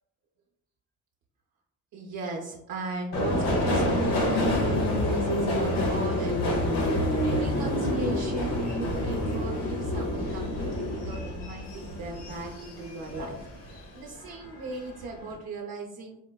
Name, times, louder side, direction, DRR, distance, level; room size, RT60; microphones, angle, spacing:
voice 1, 1.9-16.2, right 3 dB, 70° right, -2 dB, 0.6 m, -38 dB
Subway metro underground, 3.1-13.8 14.2-14.9 15.2-15.3, left 1 dB, 85° left, 0.8 m, -27 dB
4.2 x 2.1 x 2.2 m, 0.79 s
supercardioid pair, 50°, 38 cm